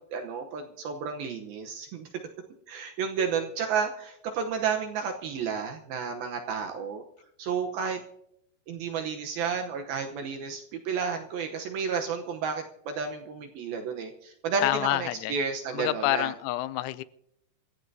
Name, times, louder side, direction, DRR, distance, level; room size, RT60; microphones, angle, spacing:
voice 1, 0.0-2.1 2.7-7.0 7.4-8.0 8.7-16.3, right 6 dB, 70° right, 2.3 m, -31 dB
voice 2, 14.6-15.3 15.7-17.0, left 16 dB, 90° left, 3.1 m, -28 dB
27.5 x 14.5 x 2.7 m
omnidirectional pair, 5.3 m